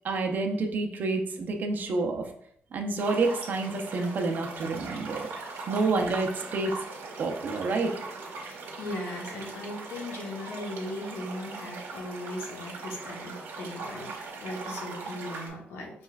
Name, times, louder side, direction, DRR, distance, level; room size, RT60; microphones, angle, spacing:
voice 1, 0.0-2.3 2.7-5.3 5.7-6.8 7.2-7.9, right 3 dB, 50° right, 3 dB, 0.6 m, -28 dB
sound 1, 3.0-15.5, right 3 dB, 90° right, 1.0 m, -40 dB
voice 2, 8.4-16.0, left 1 dB, 90° left, 0 dB, 1.0 m, -38 dB
5.4 x 3.1 x 2.4 m, 0.68 s
cardioid pair, 140°, 4 cm